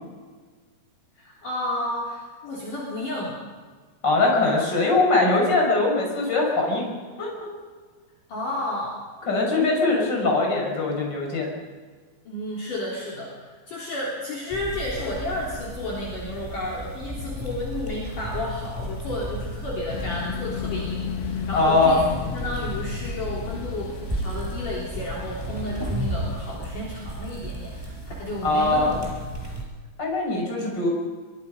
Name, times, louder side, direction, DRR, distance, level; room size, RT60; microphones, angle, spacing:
voice 1, 1.2-3.4 8.3-9.0 12.3-29.1, left 1 dB, 50° left, -4 dB, 4.7 m, -32 dB
voice 2, 4.0-6.9 7.2-7.5 9.3-11.5 21.5-22.0 28.4-29.0 30.0-30.9, left 2 dB, 25° left, 0 dB, 5.9 m, -21 dB
sound 1, 14.5-29.6, right 1 dB, 5° right, 4.8 m, -34 dB
sound 2, 19.9-26.6, left 7 dB, 70° left, 3.1 m, -35 dB
23.5 x 23.0 x 5.5 m, 1.5 s
omnidirectional pair, 5.1 m